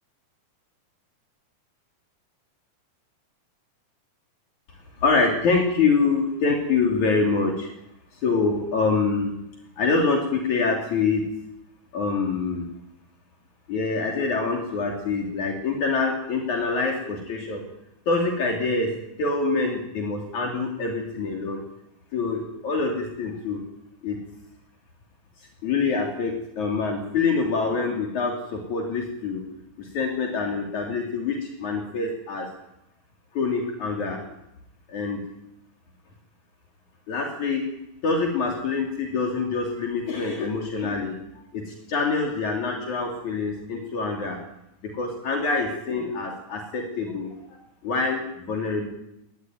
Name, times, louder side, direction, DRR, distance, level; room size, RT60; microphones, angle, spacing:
voice 1, 5.0-7.7 8.1-9.3 9.8-11.2 11.9-12.7 13.7-17.6 18.1-18.9 19.2-21.6 22.1-23.6 24.0-24.2 25.6-29.4 29.8-32.5 33.3-34.2 34.9-35.2 37.1-37.6 38.0-41.1 41.5-44.4 44.8-47.6 47.8-48.9, left 4 dB, 65° left, 1 dB, 4.6 m, -25 dB
23.5 x 20.0 x 9.4 m, 0.83 s
omnidirectional pair, 3.6 m